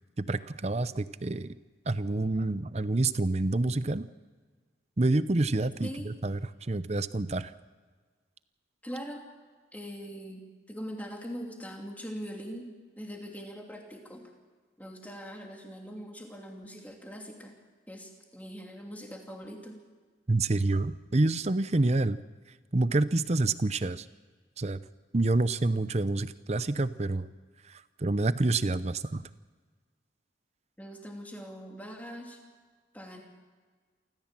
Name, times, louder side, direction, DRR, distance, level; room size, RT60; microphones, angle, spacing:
voice 1, 0.2-1.6 1.9-4.1 5.0-7.5 20.3-22.2 22.7-24.1 24.6-24.8 25.1-27.3 27.6-29.2, right 2 dB, 35° right, 14 dB, 0.6 m, -28 dB
voice 2, 8.8-9.2 9.7-12.7 13.0-14.3 14.8-17.5 17.9-19.8 30.8-32.4 32.9-33.2, equal, 10° left, 1 dB, 2.8 m, -42 dB
28.0 x 14.5 x 7.5 m, 1.5 s
head